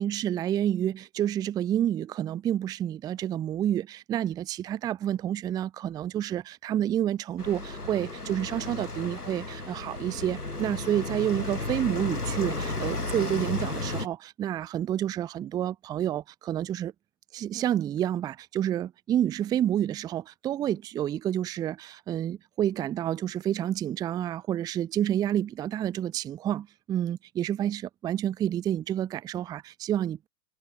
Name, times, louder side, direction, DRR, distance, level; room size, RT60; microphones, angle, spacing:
voice 1, 0.0-16.9 17.3-30.3, right 11 dB, 10° right, 0.4 m, -29 dB
sound 1, 7.4-14.1, left 2 dB, 90° left, 2.5 m, -33 dB
figure-of-eight pair, 95°, 44 cm